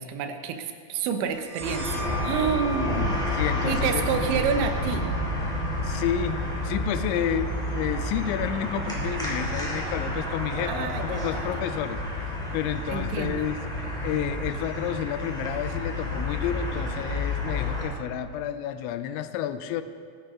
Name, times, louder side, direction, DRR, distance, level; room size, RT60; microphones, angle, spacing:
voice 1, 0.0-3.2 3.7-5.1 10.7-11.5 12.9-13.5, right 6 dB, 80° right, 6 dB, 3.2 m, -29 dB
sound 1, 1.4-8.7, left 3 dB, 45° right, 5.2 m, -40 dB
sound 2, 1.6-17.9, left 1 dB, ahead, 2.0 m, -30 dB
voice 2, 2.8-4.0 5.8-13.6 14.0-19.8, left 10 dB, 85° left, 11 dB, 2.9 m, -31 dB
sound 3, 5.2-13.4, right 2 dB, 60° right, 4.2 m, -44 dB
22.0 x 9.8 x 3.7 m, 2.2 s
omnidirectional pair, 5.3 m